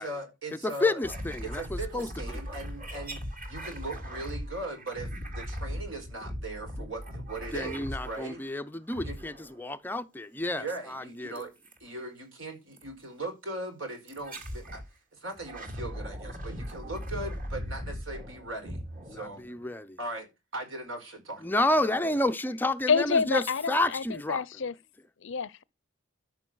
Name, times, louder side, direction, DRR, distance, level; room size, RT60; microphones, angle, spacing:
voice 1, 0.0-1.0 1.4-8.4 9.0-9.2 10.6-11.5 11.8-14.8 15.1-18.8 19.1-19.5 20.0-21.5 21.8-22.1, right 2 dB, 70° right, 4.7 m, -39 dB
voice 2, 0.5-2.4 6.8-6.9 7.5-11.4 19.1-20.0 21.4-24.4, left 2 dB, 10° left, 0.6 m, -30 dB
sound 1, 1.0-8.5 8.9-9.7 11.4-11.8 12.8-12.9 14.1-14.9 15.3-19.7, equal, 40° right, 3.1 m, -39 dB
voice 3, 22.9-24.7 25.2-25.6, left 5 dB, 65° left, 0.6 m, -28 dB
13.5 x 5.3 x 6.2 m
head